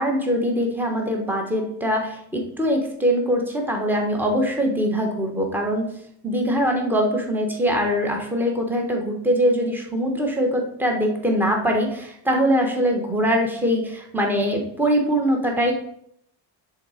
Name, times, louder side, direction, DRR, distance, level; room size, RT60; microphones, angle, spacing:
voice 1, 0.0-5.8 6.2-15.7, equal, 5° right, 1 dB, 1.2 m, -22 dB
6.9 x 4.0 x 5.0 m, 0.69 s
cardioid pair, 125°, 47 cm